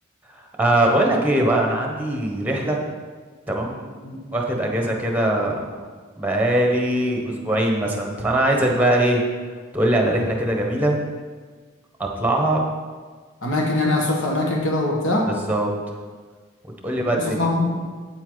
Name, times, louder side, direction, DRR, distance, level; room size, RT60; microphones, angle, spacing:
voice 1, 0.6-2.8 3.5-3.9 4.3-5.8 6.2-9.2 9.7-11.0 12.0-12.6 15.3-15.7 16.8-17.5, right 1 dB, 5° right, 1 dB, 1.1 m, -21 dB
voice 2, 13.4-15.3 17.1-17.8, left 2 dB, 60° left, -1 dB, 1.7 m, -22 dB
8.3 x 8.2 x 4.0 m, 1.5 s
head